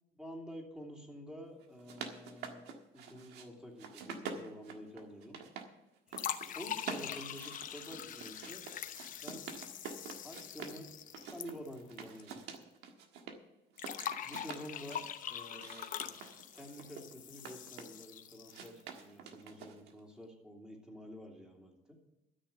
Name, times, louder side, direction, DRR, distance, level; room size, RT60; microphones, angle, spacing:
voice 1, 0.1-2.6 2.9-5.4 6.1-8.6 9.2-9.5 10.2-12.4 14.2-16.2 16.5-21.7, equal, 5° right, 0 dB, 2.9 m, -49 dB
sound 1, 1.6-3.5 3.8-5.7 6.0-6.5 6.8-10.8 11.1-13.4 13.7-15.0 15.5-18.0 18.5-20.0, right 6 dB, 85° right, 1.5 m, -47 dB
sound 2, 6.1-12.3 12.6-12.7 13.8-18.8, left 9 dB, 55° left, 0.9 m, -43 dB
13.0 x 6.5 x 8.3 m, 0.96 s
cardioid pair, 110°, 17 cm